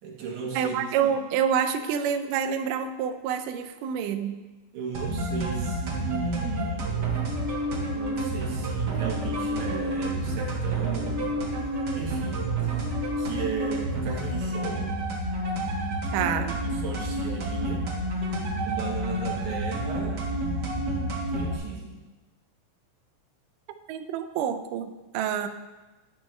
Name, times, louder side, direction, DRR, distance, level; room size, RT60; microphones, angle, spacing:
voice 1, 0.0-0.7 4.7-7.1 7.9-15.0 16.1-17.9 18.6-22.0, right 5 dB, 70° right, -1 dB, 2.5 m, -37 dB
voice 2, 0.6-4.4 16.1-16.5 23.9-25.5, right 8 dB, 90° right, 8 dB, 2.2 m, -27 dB
sound 1, 4.9-21.6, right 1 dB, 50° right, 1.3 m, -29 dB
10.5 x 6.2 x 3.2 m, 1.2 s
omnidirectional pair, 3.7 m